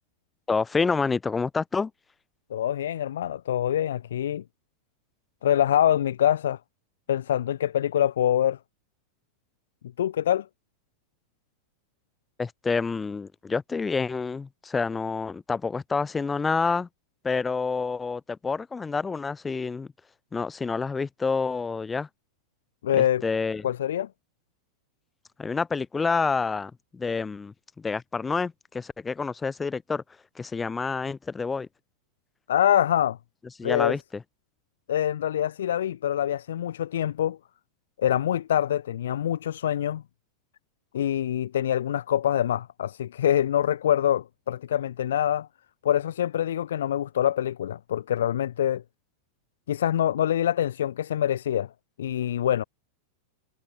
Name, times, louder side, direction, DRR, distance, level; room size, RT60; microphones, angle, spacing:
voice 1, 0.5-1.9 12.4-16.9 17.2-19.9 20.3-22.1 23.0-23.7 25.4-30.0 30.3-31.7 33.6-34.2, left 4 dB, 15° left, 6.6 m, -28 dB
voice 2, 2.5-4.4 5.4-6.6 7.1-8.6 10.0-10.5 22.8-23.2 23.6-24.1 32.5-33.2 33.6-34.0 34.9-37.4 38.0-40.0 40.9-45.5 45.8-48.8 49.7-51.7 52.0-52.6, left 10 dB, 60° left, 3.3 m, -25 dB
figure-of-eight pair, 90°, 0 cm